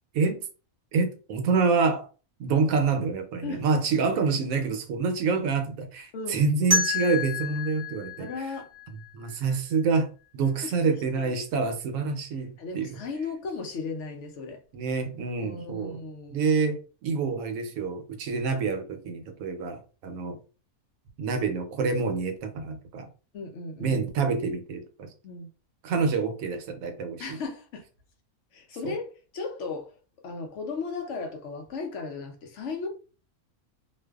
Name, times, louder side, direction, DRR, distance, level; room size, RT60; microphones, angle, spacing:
voice 1, 0.9-2.1 2.4-8.3 9.1-13.0 14.7-16.0 16.3-20.4 21.2-23.1 23.8-25.1 25.8-27.4 28.8-28.9, right 4 dB, 75° right, 0.9 m, -27 dB
sound 1, 6.7-9.6, left 2 dB, 10° left, 1.2 m, -30 dB
voice 2, 8.2-8.7 10.6-11.4 12.6-14.6 15.4-16.5 23.3-24.0 25.2-25.5 27.2-27.8 28.5-29.9 30.2-32.9, left 4 dB, 65° left, 0.8 m, -36 dB
2.5 x 2.3 x 2.2 m
omnidirectional pair, 1.6 m